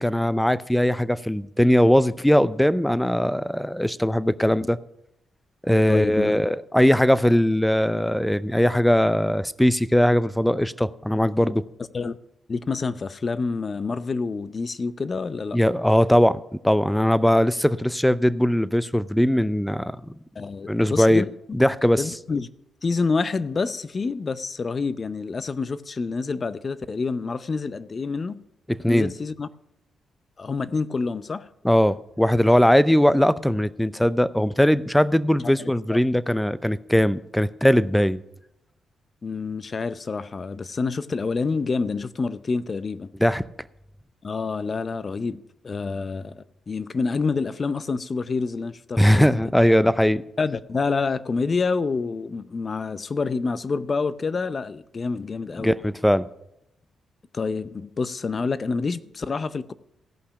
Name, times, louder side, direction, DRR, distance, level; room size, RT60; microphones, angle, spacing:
voice 1, 0.0-4.8 5.6-11.6 15.5-20.1 20.7-21.2 21.5-22.0 28.8-29.1 31.6-38.2 43.2-43.4 49.0-50.2 55.6-56.3, equal, 5° left, 0.5 m, -20 dB
voice 2, 5.9-6.4 11.5-11.6 11.9-12.2 12.5-15.6 20.4-21.3 22.0-22.5 22.8-28.4 28.9-29.5 30.4-31.5 35.6-35.7 39.2-43.1 44.2-49.3 50.4-55.8 57.3-59.7, left 4 dB, 45° left, 0.6 m, -27 dB
16.0 x 5.7 x 5.9 m
supercardioid pair, 50°, 0 cm